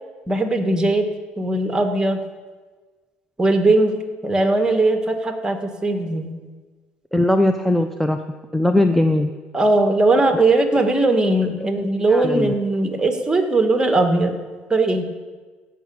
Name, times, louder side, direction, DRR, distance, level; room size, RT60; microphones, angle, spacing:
voice 1, 0.3-1.1 1.4-2.2 3.4-6.3 9.5-14.4 14.7-15.1, right 2 dB, 15° right, 5 dB, 2.1 m, -19 dB
voice 2, 7.1-8.2 8.5-9.3 10.3-10.4 11.6-12.5, left 1 dB, ahead, 7 dB, 0.8 m, -20 dB
15.5 x 6.1 x 8.9 m, 1.4 s
hypercardioid pair, 60°, 5 cm